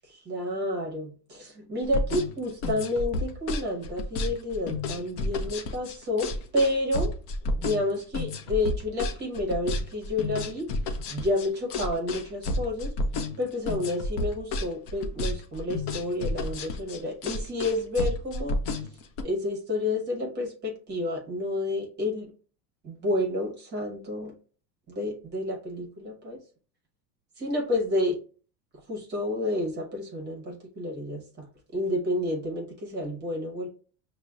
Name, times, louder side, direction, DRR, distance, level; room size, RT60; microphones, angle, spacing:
voice 1, 0.1-7.1 7.6-10.7 11.1-12.9 13.4-18.6 19.2-22.3 22.8-24.3 24.9-26.4 27.4-28.2 28.9-31.5 31.7-33.7, left 1 dB, 20° right, 0 dB, 0.9 m, -30 dB
sound 1, 1.8-19.2, left 2 dB, 40° left, 0.5 m, -31 dB
6.3 x 2.1 x 2.3 m, 0.39 s
supercardioid pair, 145°, 48 cm